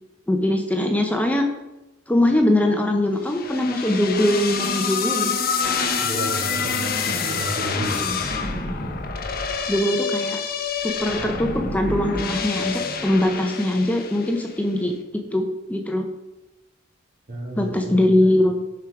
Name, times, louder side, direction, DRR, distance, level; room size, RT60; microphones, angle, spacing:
voice 1, 0.3-1.5 2.1-5.5 7.9-8.2 9.7-10.4 10.8-16.0 17.6-18.5, left 1 dB, 10° left, 3 dB, 0.7 m, -22 dB
sound 1, 3.3-14.6, left 5 dB, 50° left, 0.9 m, -27 dB
voice 2, 6.0-8.1 17.3-18.1, right 1 dB, 50° right, -1 dB, 2.2 m, -31 dB
10.5 x 4.8 x 4.8 m, 0.99 s
head